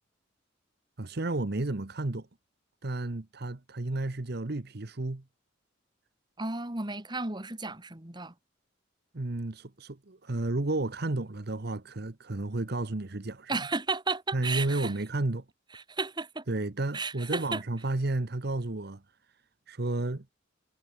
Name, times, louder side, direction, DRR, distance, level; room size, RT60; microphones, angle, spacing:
voice 1, 1.0-2.3 2.8-5.2 9.1-13.5 14.3-15.4 16.5-19.0 19.7-20.3, right 2 dB, 55° right, 1.1 m, -32 dB
voice 2, 6.4-8.3 13.5-14.9 15.7-16.5 16.9-17.6, right 3 dB, 25° right, 2.1 m, -33 dB
head